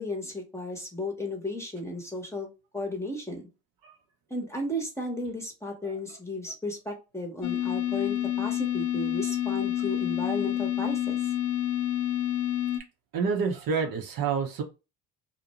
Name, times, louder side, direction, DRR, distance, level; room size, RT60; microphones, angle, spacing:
voice 1, 0.0-2.5 2.7-3.5 4.3-11.3, left 1 dB, 5° left, 2 dB, 0.9 m, -34 dB
sound 1, 7.4-12.8, left 12 dB, 45° left, 0.6 m, -28 dB
voice 2, 13.1-14.6, right 5 dB, 55° right, 3 dB, 0.8 m, -28 dB
2.5 x 2.1 x 2.9 m, 0.28 s
supercardioid pair, 75°, 42 cm